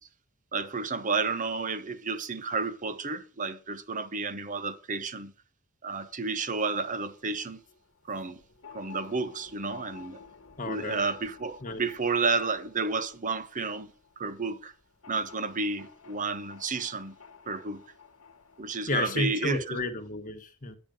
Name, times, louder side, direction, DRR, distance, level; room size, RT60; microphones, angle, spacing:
voice 1, 0.5-5.3 5.8-7.6 8.1-8.4 8.7-10.2 10.7-14.7 15.1-17.1 17.5-17.8 18.6-19.8, right 4 dB, 40° right, 0.9 m, -31 dB
sound 1, 6.4-18.8, left 6 dB, 75° left, 1.3 m, -53 dB
voice 2, 10.6-11.0 11.6-11.8 18.9-20.8, left 2 dB, 40° left, 1.3 m, -31 dB
9.2 x 9.0 x 5.2 m
head